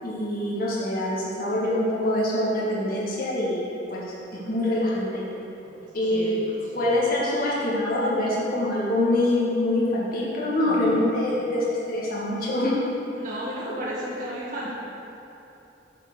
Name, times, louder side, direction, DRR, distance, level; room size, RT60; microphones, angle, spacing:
voice 1, 0.0-5.2 5.9-6.4 6.7-12.8, left 1 dB, 50° left, -6 dB, 1.9 m, -25 dB
voice 2, 6.1-6.4 10.7-11.2 13.1-14.7, equal, 45° right, -8 dB, 1.5 m, -33 dB
9.5 x 4.7 x 6.3 m, 3.0 s
head